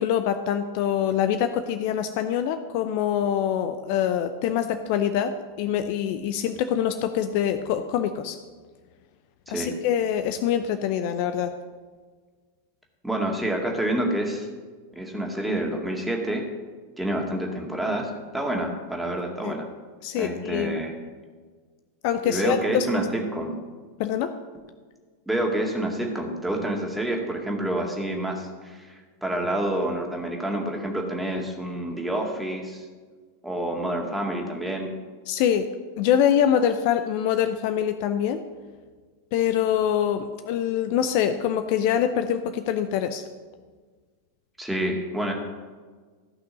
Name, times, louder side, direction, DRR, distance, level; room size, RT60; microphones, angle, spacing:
voice 1, 0.0-8.4 9.5-11.5 19.4-19.5 20.0-20.8 22.0-23.0 24.0-24.3 35.3-35.7 36.0-38.4 39.3-43.2, left 9 dB, 45° left, 9 dB, 0.6 m, -24 dB
voice 2, 13.0-14.5 14.9-16.4 17.0-19.7 20.2-20.9 22.2-23.6 25.3-32.8 33.4-34.9 44.6-45.3, right 1 dB, 5° right, 0 dB, 2.1 m, -28 dB
15.0 x 6.0 x 6.5 m, 1.5 s
figure-of-eight pair, 90°, 0 cm